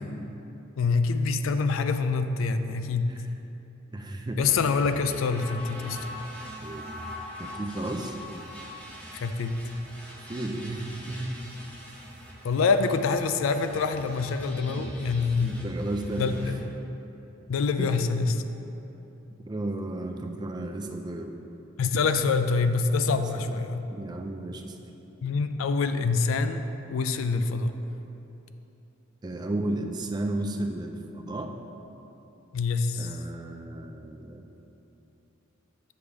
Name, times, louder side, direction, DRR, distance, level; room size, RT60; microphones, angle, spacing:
voice 1, 0.8-3.2 4.4-6.1 9.1-9.6 12.4-15.5 16.2-16.6 17.5-18.4 21.8-23.9 25.2-27.8 32.5-33.2, left 4 dB, 85° left, 9 dB, 0.4 m, -26 dB
voice 2, 3.9-4.4 6.6-6.9 7.4-8.2 10.2-11.4 15.4-16.5 17.8-18.3 19.4-21.3 23.1-23.2 23.9-24.8 29.2-31.5 33.0-34.5, right 2 dB, 20° right, 4 dB, 0.4 m, -33 dB
sound 1, 4.4-16.5, left 1 dB, 10° left, 1.1 m, -42 dB
7.0 x 3.3 x 6.0 m, 3.0 s
head